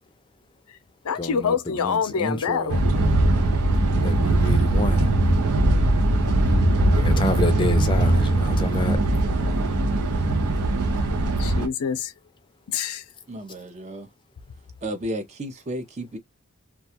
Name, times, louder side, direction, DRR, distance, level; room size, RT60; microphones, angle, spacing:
voice 1, 1.0-2.9 11.4-12.1 12.7-13.0, left 6 dB, 85° left, 0.5 m, -26 dB
voice 2, 1.9-2.6 3.9-5.1 6.9-9.0, left 2 dB, 20° left, 0.4 m, -29 dB
sound 1, 2.7-11.7, right 2 dB, 90° right, 0.6 m, -20 dB
voice 3, 13.3-14.1 14.8-16.2, right 1 dB, 30° right, 0.5 m, -33 dB
2.3 x 2.2 x 2.7 m
head